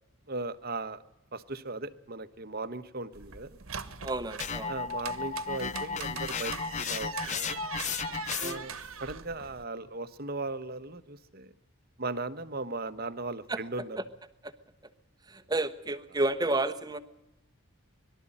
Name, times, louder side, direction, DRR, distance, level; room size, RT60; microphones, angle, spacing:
voice 1, 0.3-1.0 1.3-3.5 4.7-7.7 8.4-8.7 9.0-11.5 12.0-14.0, right 3 dB, 45° right, 12 dB, 1.1 m, -37 dB
sound 1, 3.1-9.6, right 7 dB, 70° right, 1.4 m, -42 dB
voice 2, 4.0-4.7 8.4-8.6 13.5-13.6 14.0-14.1 14.4-14.5 15.3-17.0, right 2 dB, 20° right, 9 dB, 1.1 m, -31 dB
sound 2, 4.4-8.8, left 5 dB, 30° left, 0.7 m, -34 dB
22.5 x 12.5 x 9.9 m, 0.89 s
head